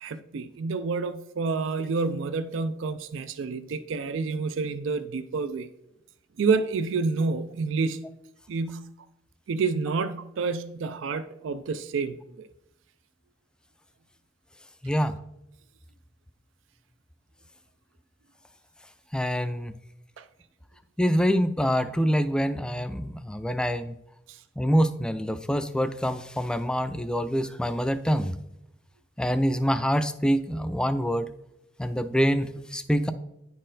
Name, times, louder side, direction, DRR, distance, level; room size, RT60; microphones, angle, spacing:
voice 1, 0.0-5.7 6.4-8.1 8.5-8.9 9.5-12.5 19.6-19.7 20.2-20.3 24.3-24.4, right 4 dB, 75° right, 0.4 m, -29 dB
voice 2, 14.8-15.1 19.1-19.7 21.0-24.0 24.6-28.4 29.2-31.3 31.8-33.1, equal, 5° left, 0.3 m, -25 dB
9.9 x 4.3 x 3.8 m
head